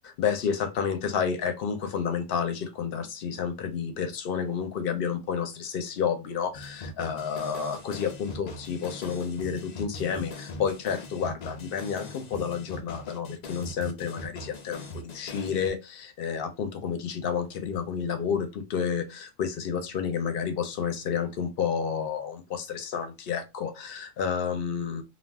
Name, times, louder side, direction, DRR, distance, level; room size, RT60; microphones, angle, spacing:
voice 1, 0.0-25.0, left 7 dB, 55° left, 0.7 m, -30 dB
sound 1, 6.5-15.7, left 2 dB, 75° left, 0.3 m, -41 dB
2.4 x 2.4 x 3.4 m
omnidirectional pair, 1.4 m